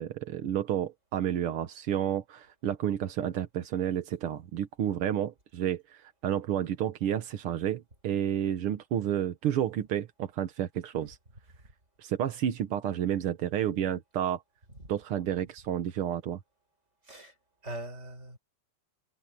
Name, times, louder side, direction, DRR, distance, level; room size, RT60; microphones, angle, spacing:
voice 1, 0.0-11.2 12.0-14.4 14.9-16.4, right 10 dB, 70° right, 1.3 m, -30 dB
voice 2, 17.0-17.4 17.6-18.4, right 1 dB, 20° right, 6.4 m, -41 dB
open air
omnidirectional pair, 4.0 m